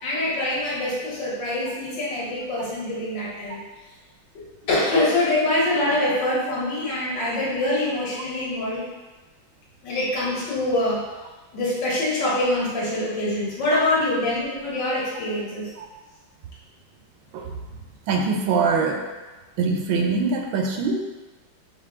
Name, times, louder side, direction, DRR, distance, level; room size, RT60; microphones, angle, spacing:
voice 1, 0.0-3.6 4.6-8.9 9.8-11.0 11.5-15.7, left 1 dB, 65° left, -7 dB, 1.9 m, -24 dB
voice 2, 18.1-19.0 19.6-21.0, right 4 dB, 80° right, 2 dB, 1.3 m, -23 dB
5.6 x 2.3 x 3.6 m, 1.2 s
omnidirectional pair, 2.2 m